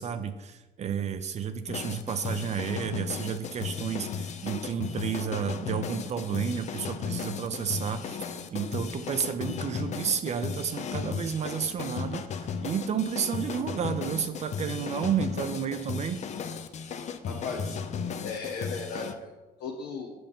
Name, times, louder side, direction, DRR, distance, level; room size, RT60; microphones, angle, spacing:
voice 1, 0.0-8.2 8.5-16.2, right 7 dB, 40° right, 10 dB, 0.5 m, -31 dB
sound 1, 1.7-19.1, left 6 dB, 45° left, 0.5 m, -35 dB
voice 2, 17.2-17.8 18.2-19.3 19.6-20.1, left 4 dB, 75° left, -1 dB, 1.0 m, -36 dB
7.7 x 6.7 x 3.5 m, 1.1 s
cardioid pair, 110°, 17 cm